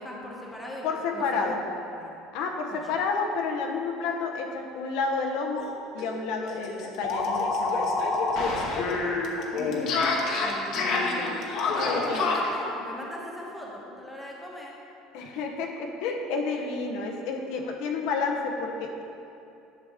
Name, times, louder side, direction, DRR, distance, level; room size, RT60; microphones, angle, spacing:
voice 1, 0.0-1.5 1.9-2.1 2.7-2.8 9.5-11.4 11.7-14.7, equal, 5° left, -3 dB, 1.2 m, -38 dB
voice 2, 0.8-1.6 2.3-5.7 5.9-8.1 8.9-9.2 11.9-12.2 15.1-19.0, left 4 dB, 65° left, 2 dB, 0.9 m, -30 dB
sound 1, 5.6-5.7 6.0-6.1 6.4-12.6, left 3 dB, 50° left, 1.1 m, -27 dB
11.0 x 6.8 x 3.6 m, 2.7 s
cardioid pair, 155°, 0 cm